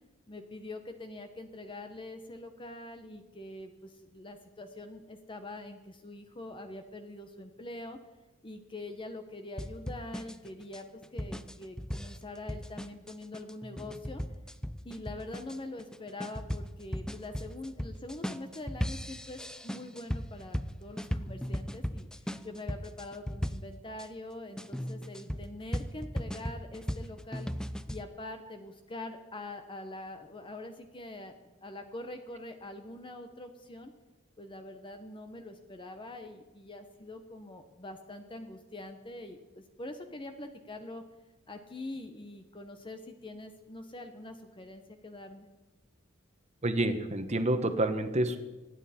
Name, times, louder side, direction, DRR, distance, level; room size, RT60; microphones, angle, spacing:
voice 1, 0.3-8.0 8.4-10.9 11.1-14.2 14.8-27.5 27.9-31.4 31.6-33.9 34.4-41.0 41.5-45.5, left 2 dB, 25° left, 6 dB, 0.9 m, -44 dB
sound 1, 9.6-24.1 24.6-28.0, equal, 5° left, 0.5 m, -37 dB
voice 2, 46.6-48.4, right 1 dB, 35° right, 8 dB, 1.2 m, -28 dB
25.5 x 9.8 x 4.3 m, 1.1 s
head